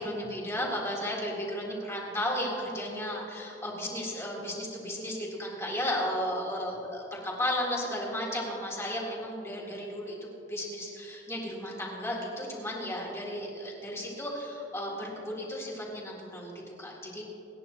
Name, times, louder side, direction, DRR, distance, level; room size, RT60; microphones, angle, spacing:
voice 1, 0.0-17.2, left 1 dB, 15° left, -4 dB, 3.6 m, -34 dB
28.5 x 10.5 x 3.0 m, 3.0 s
head